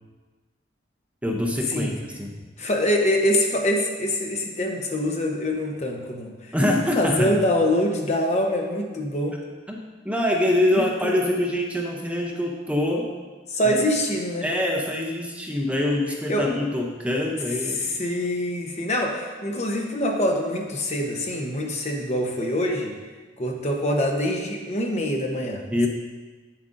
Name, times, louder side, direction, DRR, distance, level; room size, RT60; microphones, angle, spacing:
voice 1, 1.2-2.4 6.5-7.3 9.7-9.8 10.0-13.1 13.6-13.7 14.4-18.0 25.7-25.9, left 1 dB, 5° right, 0 dB, 0.6 m, -24 dB
voice 2, 2.6-6.5 7.0-9.4 10.7-11.4 13.5-14.5 16.3-16.5 17.7-22.9 23.4-25.6, left 1 dB, 40° left, 2 dB, 0.9 m, -25 dB
8.5 x 7.3 x 2.6 m, 1.3 s
head